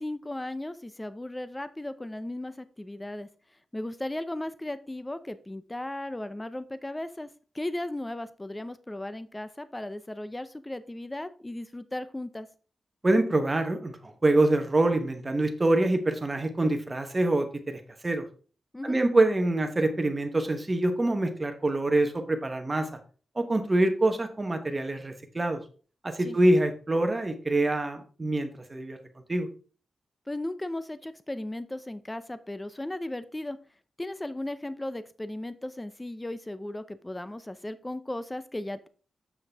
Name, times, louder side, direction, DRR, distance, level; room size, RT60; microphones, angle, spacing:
voice 1, 0.0-3.3 3.7-7.3 7.5-12.5 18.7-19.0 26.2-26.4 30.3-33.6 34.0-38.9, left 1 dB, 15° left, 13 dB, 0.5 m, -36 dB
voice 2, 13.0-18.2 18.8-22.9 23.3-25.6 26.0-29.0 29.3-29.5, right 2 dB, 25° right, 6 dB, 1.1 m, -25 dB
7.3 x 6.4 x 3.4 m, 0.39 s
cardioid pair, 95°, 0 cm